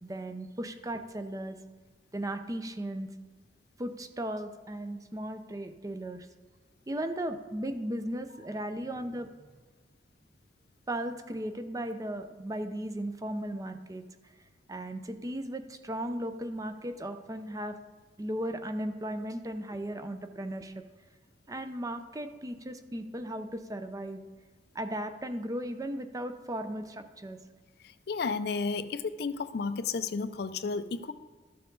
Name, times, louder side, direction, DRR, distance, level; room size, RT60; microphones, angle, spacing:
voice 1, 0.0-1.6 2.1-3.1 3.8-6.3 6.9-9.5 10.9-14.1 14.7-17.8 18.2-20.8 21.5-24.2 24.7-27.4, right 1 dB, 20° right, 8 dB, 0.5 m, -36 dB
voice 2, 27.8-31.1, left 4 dB, 60° left, 12 dB, 0.4 m, -32 dB
12.5 x 6.8 x 3.8 m, 1.4 s
head